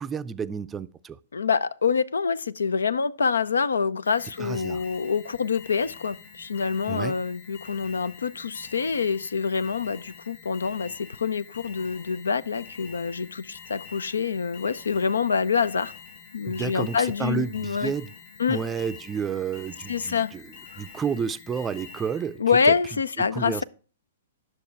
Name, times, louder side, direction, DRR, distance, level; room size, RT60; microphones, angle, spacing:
voice 1, 0.0-1.2 4.4-4.8 6.9-7.2 16.5-18.1 18.5-20.4 20.8-22.4 22.7-22.8 23.2-23.6, right 6 dB, 15° right, 0.5 m, -30 dB
voice 2, 1.3-15.9 16.3-17.9 18.4-18.6 19.9-20.3 20.7-20.8 22.4-23.6, left 5 dB, 75° left, 0.5 m, -26 dB
Alarm, 4.0-22.4, left 6 dB, 50° left, 4.0 m, -46 dB
11.0 x 6.5 x 4.5 m
figure-of-eight pair, 110°, 0 cm